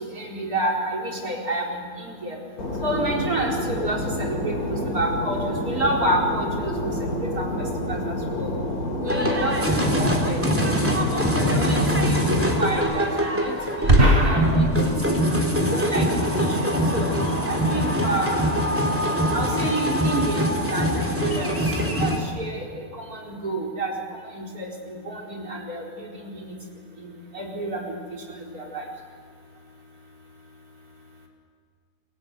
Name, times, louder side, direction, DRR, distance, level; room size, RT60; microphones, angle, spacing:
voice 1, 0.0-2.4 2.8-7.5 7.9-8.5 9.0-13.5 13.8-14.7 15.0-15.2 15.6-16.1 16.4-18.5 19.3-21.6 22.0-22.6 22.9-24.0 24.3-26.5 27.0-28.8, right 1 dB, 85° right, 0 dB, 5.0 m, -29 dB
Fixed-wing aircraft airplane, 2.6-12.8, left 1 dB, 85° left, 3.2 m, -29 dB
sound 1, 9.1-22.2, equal, 10° right, 3.2 m, -23 dB
sound 2, 9.8-18.7, right 1 dB, 40° right, 3.4 m, -28 dB
27.5 x 23.0 x 8.1 m, 2.1 s
omnidirectional pair, 1.5 m